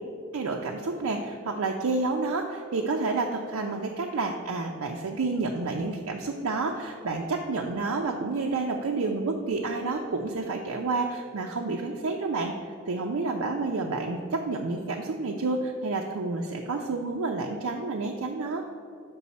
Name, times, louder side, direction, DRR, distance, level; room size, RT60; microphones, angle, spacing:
voice 1, 0.3-12.5 12.9-18.6, right 3 dB, 80° right, 1 dB, 0.5 m, -29 dB
7.1 x 5.3 x 4.1 m, 2.4 s
head